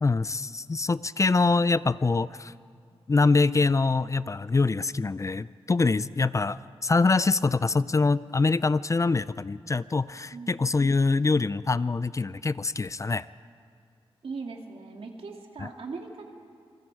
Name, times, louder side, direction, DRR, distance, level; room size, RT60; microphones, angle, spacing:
voice 1, 0.0-2.5 3.1-13.3 15.6-15.7, left 3 dB, 30° left, 17 dB, 0.4 m, -24 dB
voice 2, 14.2-16.3, right 4 dB, 75° right, 2 dB, 2.4 m, -39 dB
28.0 x 20.5 x 4.8 m, 2.2 s
cardioid pair, 65°, 10 cm